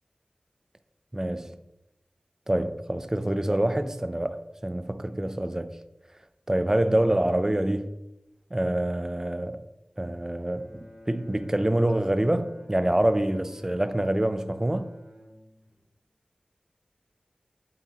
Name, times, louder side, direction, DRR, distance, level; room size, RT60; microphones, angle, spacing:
voice 1, 1.1-1.5 2.5-5.7 6.5-7.9 8.5-9.6 10.0-14.9, right 1 dB, 20° right, 0.6 m, -26 dB
Bowed string instrument, 10.4-15.8, equal, 90° right, 2.2 m, -52 dB
8.2 x 8.1 x 3.0 m
wide cardioid pair, 60°, 3 cm